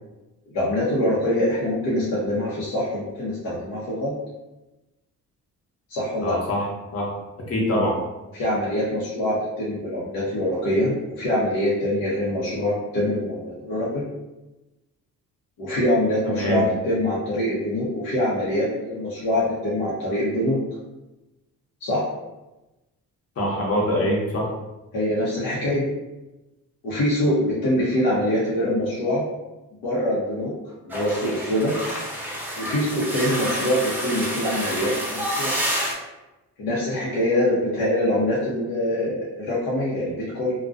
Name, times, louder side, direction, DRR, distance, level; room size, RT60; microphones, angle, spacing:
voice 1, 0.5-4.1 5.9-6.4 8.3-14.1 15.6-20.6 21.8-22.0 24.9-25.8 26.8-29.2 29.8-30.5 30.9-31.7 32.6-35.5 36.6-40.5, left 1 dB, 75° left, -7 dB, 0.7 m, -24 dB
voice 2, 6.2-6.7 6.9-7.1 7.5-8.0 16.2-16.7 23.4-24.5, equal, 40° left, -3 dB, 0.9 m, -24 dB
sound 1, 30.9-35.9, equal, 5° right, 0.7 m, -29 dB
2.3 x 2.1 x 2.5 m, 1.0 s
cardioid pair, 75°, 36 cm